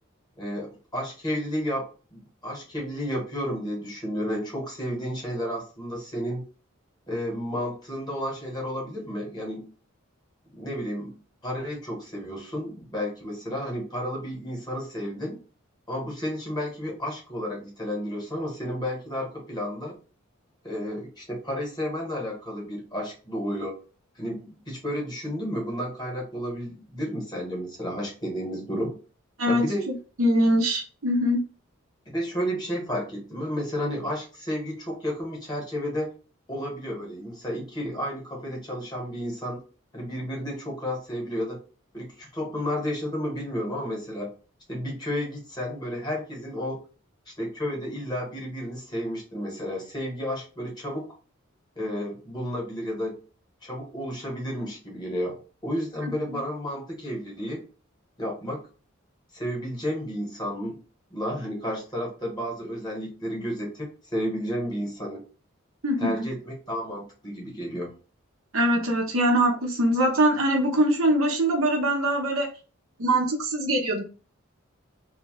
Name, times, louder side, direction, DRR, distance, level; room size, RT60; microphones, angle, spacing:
voice 1, 0.4-6.4 7.1-9.7 10.5-11.2 11.4-15.4 15.9-20.0 20.6-23.8 24.2-28.9 29.5-29.9 32.1-36.1 36.5-39.6 39.9-41.6 41.9-44.3 44.7-46.8 47.3-51.1 51.8-53.2 53.6-57.6 58.2-58.7 59.3-60.8 61.1-65.2 66.0-67.9, equal, 20° left, -1 dB, 0.9 m, -32 dB
voice 2, 29.4-31.4 56.3-56.4 65.8-66.3 68.5-72.5 73.0-74.0, right 1 dB, 80° right, 1 dB, 0.8 m, -23 dB
2.7 x 2.1 x 3.0 m, 0.35 s
head